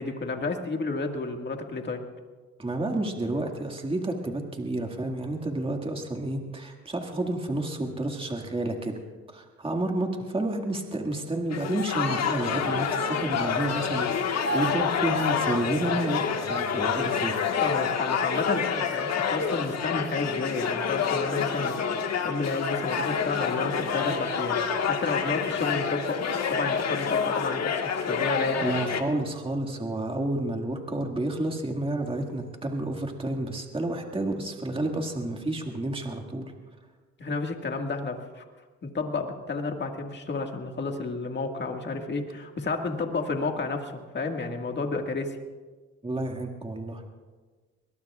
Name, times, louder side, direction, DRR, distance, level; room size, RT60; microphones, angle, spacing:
voice 1, 0.0-2.0 17.6-21.7 22.2-26.2 26.5-28.7 37.2-38.4 38.8-45.4, left 3 dB, 35° left, 3 dB, 1.9 m, -31 dB
voice 2, 2.6-9.0 9.3-17.6 28.6-36.5 41.8-41.9 46.0-47.0, right 1 dB, 20° right, 2 dB, 2.0 m, -30 dB
sound 1, 11.5-29.0, left 6 dB, 60° left, 1.6 m, -28 dB
23.5 x 20.5 x 2.4 m, 1.4 s
cardioid pair, 90°, 30 cm